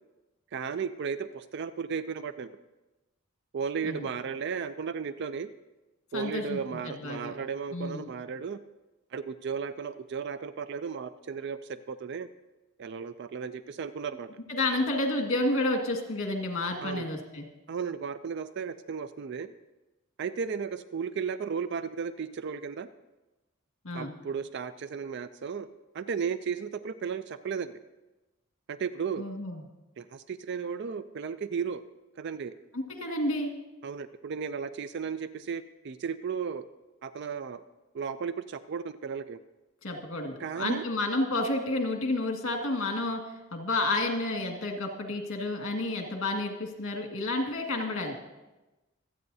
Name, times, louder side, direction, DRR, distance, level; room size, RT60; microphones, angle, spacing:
voice 1, 0.5-2.6 3.5-5.5 6.1-8.6 9.1-12.3 12.8-14.3 16.8-17.1 17.7-19.5 20.2-22.9 23.9-27.8 28.7-29.3 30.0-31.8 32.2-32.5 33.8-36.7 37.0-37.6 37.9-39.4 40.4-40.9, right 6 dB, 55° right, 12 dB, 0.4 m, -35 dB
voice 2, 6.1-6.6 6.9-7.3 7.7-8.0 14.5-17.5 23.8-24.1 29.2-29.6 32.7-33.5 39.8-43.2 43.5-48.2, left 2 dB, 70° left, 2 dB, 1.9 m, -30 dB
25.5 x 8.8 x 2.7 m, 1.1 s
head